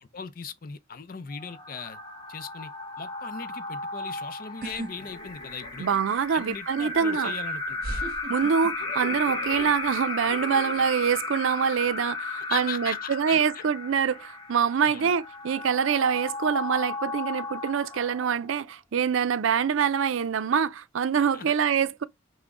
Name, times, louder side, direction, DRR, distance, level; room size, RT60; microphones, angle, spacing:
voice 1, 0.0-2.0 2.3-2.7 3.0-5.9 6.3-8.1 12.5-13.7 14.9-15.1 21.3-21.5, left 6 dB, 45° left, 0.5 m, -39 dB
sound 1, 1.3-18.7, left 3 dB, 20° left, 1.2 m, -35 dB
sound 2, 4.6-4.9 5.3-5.9 6.9-7.0 7.8-9.2 9.5-9.9, right 1 dB, 50° right, 1.0 m, -36 dB
sound 3, 4.9-6.5 6.8-8.1 8.8-9.9 10.2-10.9, left 3 dB, 90° left, 0.8 m, -44 dB
voice 2, 5.8-7.3 8.3-22.0, right 7 dB, 90° right, 0.4 m, -25 dB
5.9 x 2.1 x 3.6 m
head